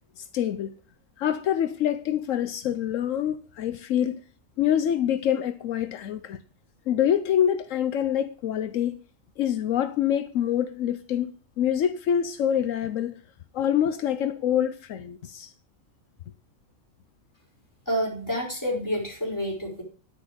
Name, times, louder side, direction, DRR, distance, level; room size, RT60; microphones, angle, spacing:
voice 1, 0.2-0.7 1.2-4.2 4.6-6.4 6.9-9.0 9.4-13.1 13.5-15.5, left 10 dB, 80° left, 1.1 m, -26 dB
voice 2, 17.9-19.8, equal, 15° left, 4.6 m, -28 dB
10.5 x 9.9 x 5.1 m
omnidirectional pair, 1.3 m